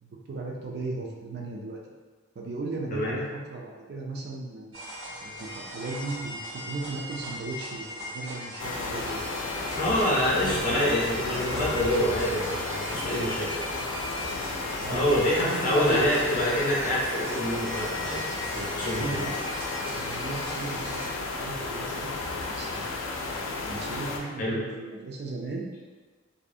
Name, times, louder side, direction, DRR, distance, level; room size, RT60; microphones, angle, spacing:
voice 1, 0.0-1.8 2.4-4.8 5.2-9.3 9.6-11.5 13.3-14.0 14.8-15.0 15.4-16.0 18.9-19.4 19.9-22.1 22.5-22.9 23.5-25.6, right 3 dB, 55° right, -1 dB, 0.4 m, -37 dB
sound 1, 4.7-21.1, equal, 75° right, 0.9 m, -39 dB
sound 2, 8.6-24.2, left 3 dB, 85° left, 0.3 m, -33 dB
voice 2, 9.8-13.5 14.9-18.2 18.5-19.2 24.4-24.6, equal, 40° left, -5 dB, 0.6 m, -26 dB
2.6 x 2.0 x 2.5 m, 1.4 s
head